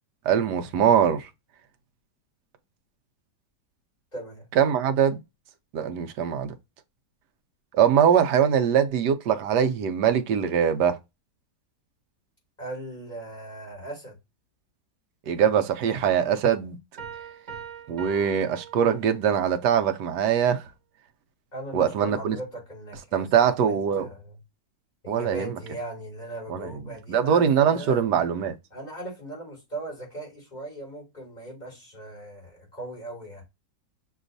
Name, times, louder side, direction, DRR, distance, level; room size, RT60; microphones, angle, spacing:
voice 1, 0.3-1.3 4.6-5.2 5.7-6.5 7.7-11.0 15.3-16.8 17.9-20.6 21.7-22.4 23.1-24.1 25.1-25.5 26.5-26.7 27.1-28.6, right 8 dB, 75° right, 1.2 m, -22 dB
voice 2, 4.1-4.5 12.6-14.2 21.5-24.4 25.0-28.0 28.7-33.4, right 2 dB, 25° left, 2.7 m, -38 dB
Piano, 17.0-19.5, right 7 dB, 40° right, 0.6 m, -41 dB
6.3 x 3.0 x 2.6 m
omnidirectional pair, 1.9 m